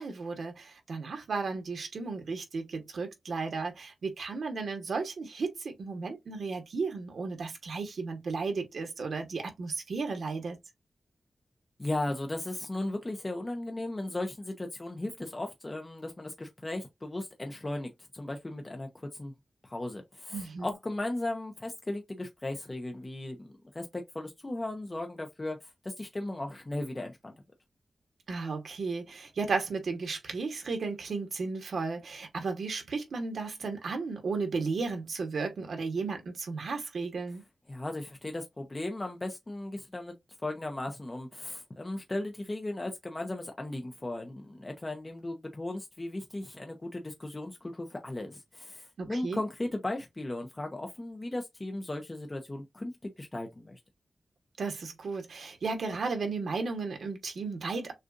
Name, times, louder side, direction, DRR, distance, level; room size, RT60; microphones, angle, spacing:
voice 1, 0.0-10.6 20.3-20.7 28.3-37.4 49.0-49.4 54.6-57.9, right 4 dB, 75° right, 1.4 m, -34 dB
voice 2, 11.8-19.3 19.6-27.3 37.7-40.1 40.4-53.8, left 2 dB, 20° left, 0.7 m, -36 dB
6.3 x 2.4 x 2.6 m
wide cardioid pair, 160°, 0 cm